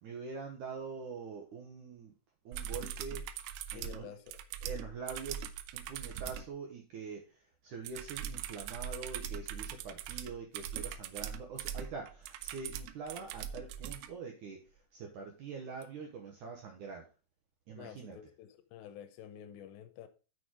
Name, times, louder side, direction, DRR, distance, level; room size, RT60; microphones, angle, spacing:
voice 1, 0.0-2.1 2.5-3.3 3.7-4.1 4.6-5.5 5.7-14.6 14.9-17.1 17.7-18.2, right 5 dB, 70° right, 1.9 m, -44 dB
sound 1, 2.5-6.5 7.8-14.1 15.8-15.9, right 9 dB, 90° right, 2.8 m, -41 dB
voice 2, 3.7-4.4 17.7-20.1, left 10 dB, 80° left, 3.0 m, -50 dB
7.0 x 6.1 x 4.8 m
omnidirectional pair, 5.0 m